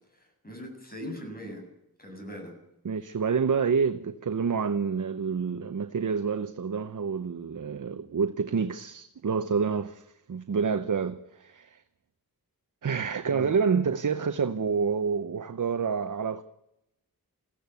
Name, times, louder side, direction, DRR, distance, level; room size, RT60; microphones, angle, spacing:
voice 1, 0.4-1.7 2.0-2.5 13.3-13.5, equal, 25° left, 7.7 m, -40 dB
voice 2, 2.8-11.8 12.8-16.4, right 6 dB, 55° right, 0.9 m, -28 dB
22.0 x 15.5 x 8.2 m
wide cardioid pair, 100°, 37 cm